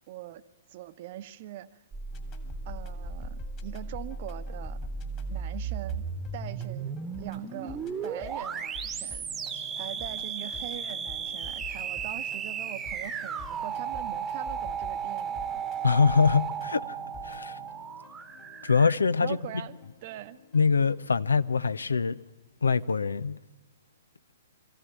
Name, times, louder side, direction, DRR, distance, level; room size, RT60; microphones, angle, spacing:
voice 1, 0.1-0.4 0.7-1.8 2.6-4.8 5.3-6.1 6.3-9.3 9.7-15.6 19.2-20.4, right 13 dB, 45° right, 0.9 m, -42 dB
sound 1, 1.9-19.0, right 6 dB, 15° right, 1.2 m, -35 dB
sound 2, 2.1-21.8, left 6 dB, 30° left, 2.6 m, -48 dB
voice 2, 15.8-17.0 17.2-17.6 18.6-19.4 20.5-22.2 22.6-23.4, left 5 dB, 75° left, 0.6 m, -24 dB
23.5 x 15.0 x 8.9 m
figure-of-eight pair, 115°, 0 cm